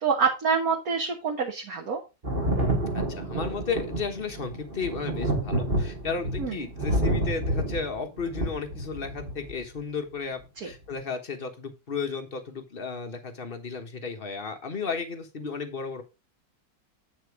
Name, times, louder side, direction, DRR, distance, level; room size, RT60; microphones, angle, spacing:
voice 1, 0.0-2.0 6.4-6.6 10.6-10.7, right 5 dB, 55° right, 1 dB, 1.7 m, -26 dB
Thunder, 2.2-9.6 10.7-10.8, right 1 dB, 30° right, 2.1 m, -29 dB
voice 2, 2.9-16.0, left 5 dB, 35° left, 6 dB, 1.2 m, -34 dB
8.9 x 4.4 x 4.7 m, 0.27 s
omnidirectional pair, 1.9 m